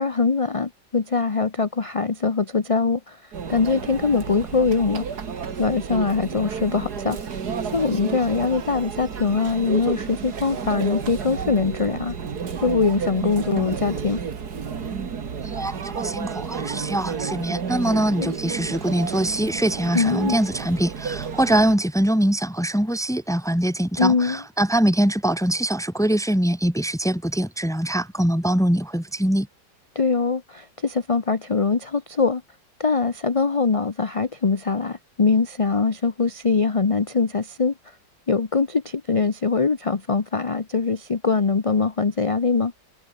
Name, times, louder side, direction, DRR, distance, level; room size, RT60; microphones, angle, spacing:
voice 1, 0.0-3.2 3.5-5.0 5.6-7.2 7.7-12.1 12.6-14.2 18.2-18.3 19.9-20.4 24.0-24.4 29.9-32.4 32.8-37.7 38.3-42.7, left 4 dB, 30° left, 0.6 m, -22 dB
Conversation / Chatter / Crowd, 3.3-21.7, right 6 dB, 60° right, 2.4 m, -31 dB
voice 2, 15.4-29.5, right 1 dB, ahead, 1.8 m, -23 dB
omnidirectional pair, 1.9 m